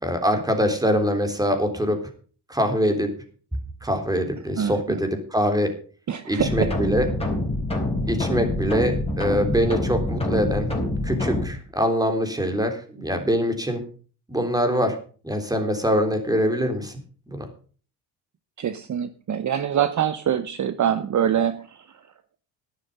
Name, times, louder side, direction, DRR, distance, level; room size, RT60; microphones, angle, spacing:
voice 1, 0.0-2.0 2.5-3.1 3.8-5.7 6.3-7.1 8.1-10.7 11.0-13.8 14.3-15.0 15.2-17.0 17.3-17.5, equal, 10° right, 6 dB, 3.6 m, -23 dB
voice 2, 4.6-5.0 6.1-6.7 18.6-21.8, right 9 dB, 45° right, 12 dB, 0.9 m, -24 dB
sound 1, 6.4-11.5, left 1 dB, 15° left, 4.5 m, -26 dB
11.5 x 11.5 x 5.5 m, 0.40 s
cardioid pair, 95°, 42 cm